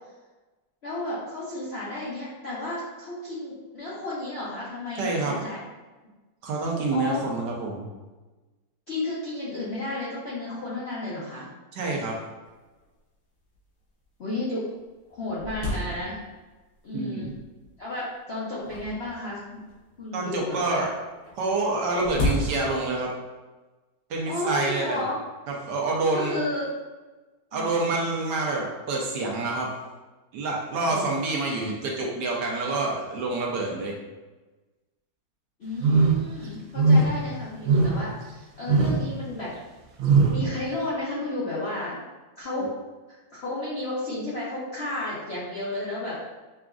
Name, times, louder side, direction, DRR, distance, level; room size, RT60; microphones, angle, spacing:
voice 1, 0.8-5.6 6.9-7.2 8.9-11.5 14.2-14.7 15.1-16.2 16.8-17.3 17.8-19.6 20.0-20.9 24.3-25.1 26.1-26.7 27.5-28.0 30.9-31.1 35.6-39.5 40.3-42.0 42.4-42.7 43.3-46.2, left 2 dB, 60° left, -9 dB, 0.7 m, -32 dB
voice 2, 5.0-5.4 6.4-7.9 11.7-12.1 16.9-17.3 20.1-20.9 21.4-23.1 24.1-25.0 25.5-26.4 27.5-29.7 30.3-33.9, right 2 dB, 70° right, -1 dB, 1.2 m, -27 dB
sound 1, 12.5-12.6 12.8-12.9 13.5-13.6 14.3-14.4 14.7-16.5 17.2-17.7 18.6-20.0 21.2-23.0, left 1 dB, 80° left, 1.8 m, -33 dB
sound 2, 35.8-36.3 36.8-37.2 37.6-38.1 38.7-39.1 40.0-40.5, right 3 dB, 85° right, 1.3 m, -20 dB
5.8 x 2.4 x 2.3 m, 1.2 s
omnidirectional pair, 2.0 m